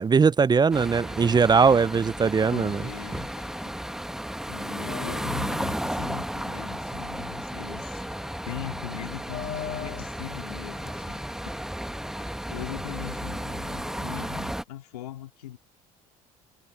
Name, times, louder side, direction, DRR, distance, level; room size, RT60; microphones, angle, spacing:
voice 1, 0.0-2.8, right 5 dB, 20° right, 0.5 m, -20 dB
sound 1, 0.7-14.6, equal, ahead, 1.2 m, -34 dB
sound 2, 1.5-14.4, left 8 dB, 45° left, 3.0 m, -46 dB
voice 2, 2.5-3.3 3.6-3.7 4.5-8.0 8.4-11.2 12.5-15.6, left 13 dB, 85° left, 3.1 m, -40 dB
hypercardioid pair, 65°, 19 cm